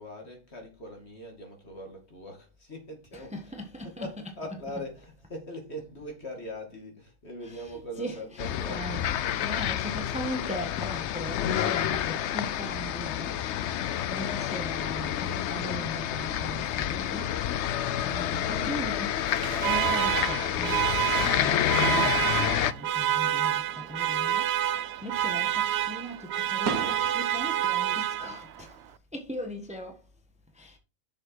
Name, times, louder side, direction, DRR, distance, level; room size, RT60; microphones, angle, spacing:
voice 1, 0.0-3.6 3.8-8.9, equal, 50° left, 2.6 m, -41 dB
voice 2, 3.1-4.4 4.7-4.9 7.4-13.4 14.1-17.4 18.0-19.2 19.6-28.8 29.1-30.0 30.5-30.8, equal, 5° right, 1.2 m, -39 dB
sound 1, 8.4-22.7, left 10 dB, 65° left, 0.8 m, -29 dB
Alarm, 19.2-28.6, right 11 dB, 65° right, 0.6 m, -28 dB
sound 2, 21.2-28.1, right 5 dB, 85° right, 1.6 m, -42 dB
6.8 x 6.5 x 4.7 m
omnidirectional pair, 1.5 m